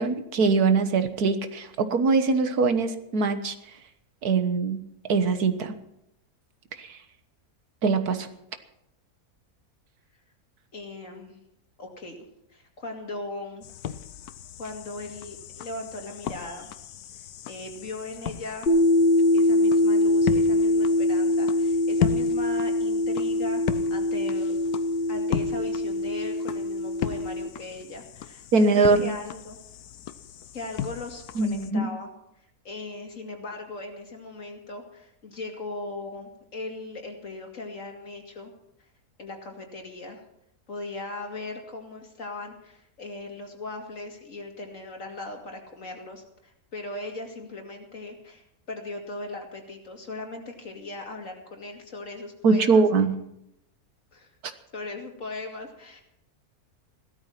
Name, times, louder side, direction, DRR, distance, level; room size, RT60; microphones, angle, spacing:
voice 1, 0.0-3.6 4.2-4.8 5.1-5.7 6.8-7.0 7.8-8.3 28.5-29.2 31.4-31.9 52.4-53.2, right 4 dB, 80° right, 9 dB, 1.8 m, -22 dB
voice 2, 10.7-11.4 11.8-12.2 12.5-13.7 14.6-16.7 17.5-18.7 19.3-23.6 23.9-24.5 25.1-29.6 30.5-32.1 32.6-38.5 39.2-40.2 40.7-52.8 54.1-54.3 54.7-56.0, left 2 dB, 55° left, 3 dB, 2.9 m, -38 dB
sound 1, 13.6-31.7, left 9 dB, 80° left, 1.3 m, -36 dB
sound 2, 18.7-27.5, left 1 dB, 40° left, 1.4 m, -23 dB
17.0 x 13.0 x 5.9 m, 0.79 s
omnidirectional pair, 1.6 m